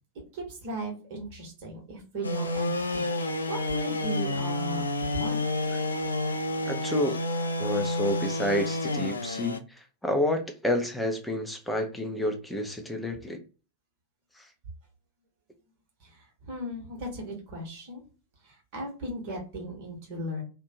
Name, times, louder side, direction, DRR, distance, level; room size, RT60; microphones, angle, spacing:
voice 1, 0.3-5.4 16.0-18.0 18.4-20.4, right 1 dB, 45° right, 1.1 m, -37 dB
sound 1, 2.2-9.6, left 2 dB, 75° left, 0.3 m, -29 dB
voice 2, 6.6-7.2 7.6-13.4 14.4-14.5, left 1 dB, 5° left, 0.6 m, -29 dB
2.6 x 2.2 x 2.6 m
figure-of-eight pair, 90°, 0 cm